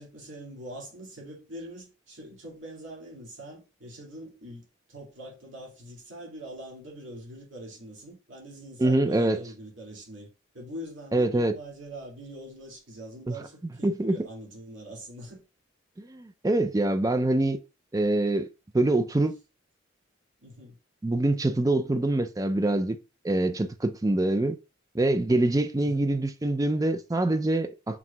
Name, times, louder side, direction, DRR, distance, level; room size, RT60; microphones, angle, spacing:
voice 1, 0.0-10.3 10.5-15.4 20.4-20.8 25.8-26.0, equal, 75° right, 2.0 m, -43 dB
voice 2, 8.8-9.4 11.1-11.5 13.3-13.4 13.8-14.3 16.0-17.6 17.9-18.5 18.7-19.4 21.0-23.0 23.2-24.6 24.9-28.0, right 2 dB, 15° right, 0.3 m, -25 dB
6.0 x 3.6 x 2.3 m
head